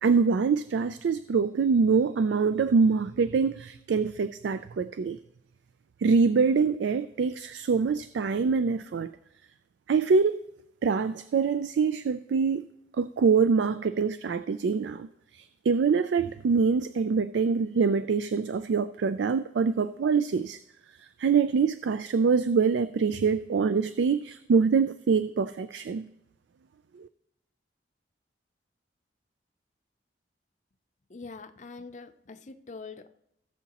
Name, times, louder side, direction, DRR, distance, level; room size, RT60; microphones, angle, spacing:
voice 1, 0.0-5.2 6.0-9.1 9.9-10.4 10.8-12.6 13.0-15.1 15.3-20.6 21.0-26.1 27.0-27.1, right 5 dB, 75° right, 0.3 m, -25 dB
voice 2, 31.1-33.1, left 4 dB, 40° left, 0.5 m, -44 dB
17.0 x 7.1 x 2.9 m
head